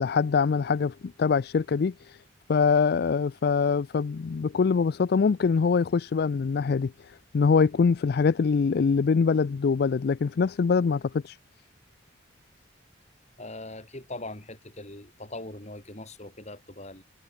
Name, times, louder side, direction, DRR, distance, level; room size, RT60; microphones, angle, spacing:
voice 1, 0.0-2.2 2.5-11.4, left 5 dB, 55° left, 0.4 m, -24 dB
voice 2, 13.4-17.0, left 2 dB, 35° left, 5.4 m, -41 dB
head